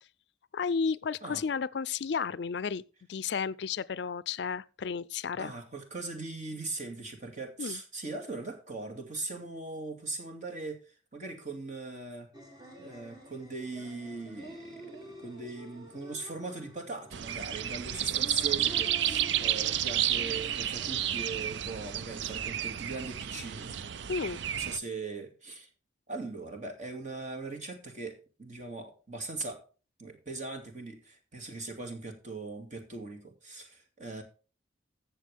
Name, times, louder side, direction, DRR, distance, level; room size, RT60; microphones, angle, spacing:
voice 1, 0.5-2.8 3.1-5.5 7.6-7.8 24.1-24.4, left 6 dB, 65° left, 0.4 m, -32 dB
voice 2, 5.4-10.8 11.1-12.3 12.8-14.9 15.2-23.8 24.5-25.7 26.1-29.6 30.0-34.2, right 3 dB, 40° right, 2.3 m, -40 dB
sound 1, 12.3-21.5, right 1 dB, 20° right, 1.9 m, -48 dB
sound 2, 17.1-24.8, right 11 dB, 70° right, 0.5 m, -31 dB
15.0 x 6.8 x 3.5 m
head